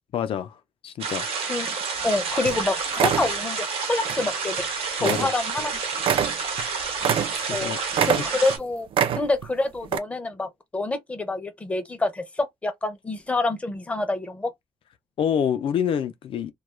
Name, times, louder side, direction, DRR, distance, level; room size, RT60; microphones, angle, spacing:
voice 1, 0.1-0.6 0.8-1.3 5.0-5.3 7.5-7.8 15.2-16.5, left 8 dB, 65° left, 0.4 m, -26 dB
sound 1, 1.0-8.6, right 5 dB, 80° right, 0.9 m, -29 dB
voice 2, 1.4-1.8 2.0-4.7 4.9-5.7 7.5-8.9 9.2-14.5, left 2 dB, 15° left, 0.5 m, -27 dB
sound 2, 2.0-2.2 2.5-2.6 2.9-3.3 4.0-4.3 4.6-4.7 5.1-5.3 5.6-5.7 6.0-7.6 7.9-8.6 8.9-9.5 9.8-10.0, right 8 dB, 65° right, 0.4 m, -25 dB
2.3 x 2.2 x 3.0 m
wide cardioid pair, 165°, 10 cm